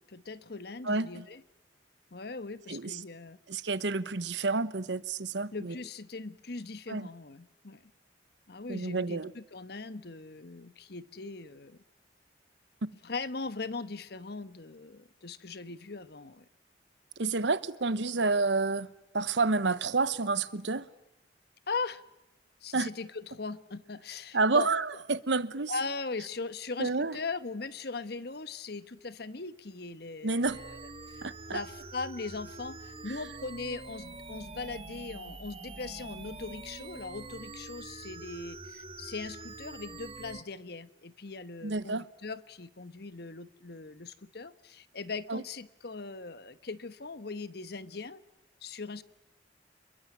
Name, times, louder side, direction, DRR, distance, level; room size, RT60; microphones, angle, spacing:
voice 1, 0.1-1.4 2.1-3.4 5.5-7.9 8.5-11.8 13.0-16.4 21.7-22.0 22.6-24.7 25.7-30.8 31.1-48.2 48.6-49.0, left 4 dB, 65° left, 1.2 m, -40 dB
voice 2, 0.8-1.2 2.7-3.0 3.5-5.7 6.9-7.1 8.7-9.3 17.2-18.9 19.1-20.9 22.7-22.9 24.3-25.7 26.8-27.2 30.2-30.6 31.2-31.6 41.6-42.0 45.3-45.4, right 3 dB, 85° right, 1.1 m, -29 dB
sound 1, 30.4-40.4, right 3 dB, 35° right, 1.9 m, -45 dB
27.5 x 22.5 x 8.7 m
head